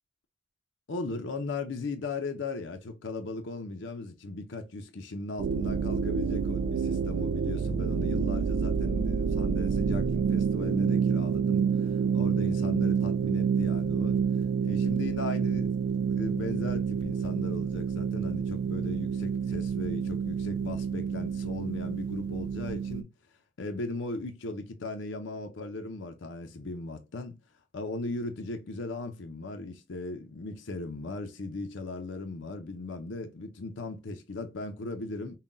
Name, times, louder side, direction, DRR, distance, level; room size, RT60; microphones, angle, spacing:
voice 1, 0.9-14.2 14.6-15.7 16.1-23.1 23.6-27.4 27.7-35.4, left 3 dB, 90° left, 0.6 m, -37 dB
sound 1, 5.4-23.0, right 6 dB, 80° right, 0.3 m, -28 dB
5.6 x 2.2 x 2.5 m
head